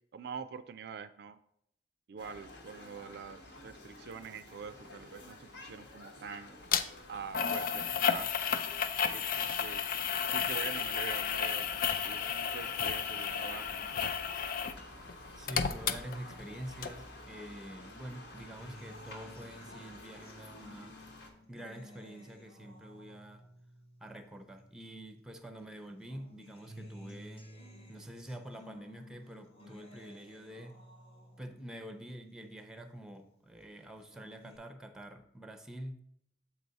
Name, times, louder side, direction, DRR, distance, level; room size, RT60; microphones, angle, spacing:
voice 1, 0.0-1.4 2.1-6.6 7.1-8.3 9.1-9.9 10.3-14.0, right 6 dB, 60° right, 12 dB, 0.3 m, -45 dB
sound 1, 2.2-21.3, left 2 dB, 70° left, 1.2 m, -51 dB
sound 2, 6.7-6.8 7.3-14.8 15.1-16.5 16.8-16.9, left 7 dB, 50° left, 0.4 m, -32 dB
voice 2, 15.4-21.0 21.5-23.4 24.0-27.5 27.9-30.8 31.4-36.0, right 1 dB, 5° right, 7 dB, 0.6 m, -47 dB
Acoustic guitar, 18.6-25.2 25.6-33.2 33.6-34.6, equal, 35° left, 1.1 m, -55 dB
7.3 x 4.7 x 4.0 m, 0.72 s
head